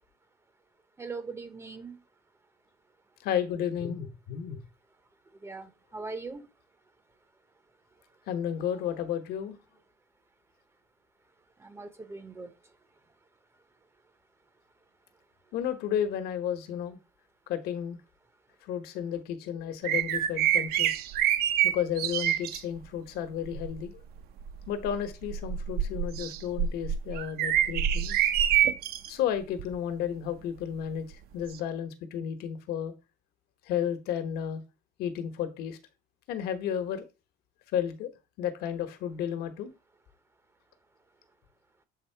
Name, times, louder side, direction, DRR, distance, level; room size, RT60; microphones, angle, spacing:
voice 1, 1.0-2.0 5.4-6.5 11.6-12.5, right 4 dB, 15° right, 0.6 m, -40 dB
voice 2, 3.2-4.6 8.3-9.5 15.5-17.0 17.5-18.0 18.6-21.0 21.6-23.9 24.7-28.2 29.1-31.1 31.3-32.9 33.7-34.6 35.0-35.8 36.3-37.0 37.7-38.1 38.4-39.7, left 9 dB, 70° left, 1.2 m, -32 dB
sound 1, 19.8-22.6 23.4-23.8 24.4-29.1 29.6-29.7 31.5-31.6, right 10 dB, 70° right, 0.7 m, -27 dB
7.5 x 3.6 x 4.5 m
cardioid pair, 150°, 17 cm